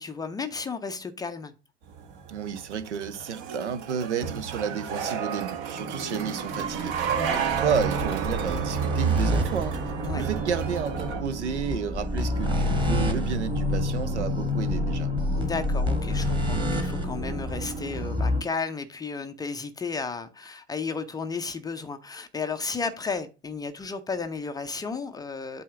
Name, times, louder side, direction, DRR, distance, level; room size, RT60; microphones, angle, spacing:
voice 1, 0.0-1.5 7.1-7.4 10.0-10.3 15.4-25.6, left 4 dB, 10° left, 0.5 m, -33 dB
sound 1, 1.9-11.2, right 7 dB, 45° right, 1.1 m, -32 dB
voice 2, 2.3-7.0 7.3-9.8 10.2-15.1, right 7 dB, 70° right, 0.8 m, -31 dB
sound 2, 5.7-18.4, equal, 15° right, 1.4 m, -28 dB
8.3 x 2.8 x 5.8 m
figure-of-eight pair, 85°, 36 cm